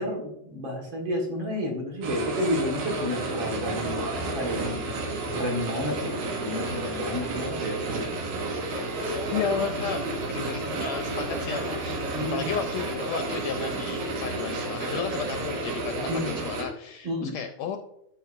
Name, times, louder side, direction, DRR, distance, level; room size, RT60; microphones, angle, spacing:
voice 1, 0.0-5.0 5.3-8.1 12.1-12.5 16.1-16.3 17.0-17.4, left 1 dB, 50° right, -1 dB, 2.0 m, -31 dB
sound 1, 2.0-16.6, right 2 dB, 75° right, 2.8 m, -31 dB
voice 2, 9.3-10.0 10.3-17.8, left 7 dB, 80° left, 6 dB, 1.6 m, -33 dB
13.0 x 5.9 x 2.5 m, 0.80 s
omnidirectional pair, 3.5 m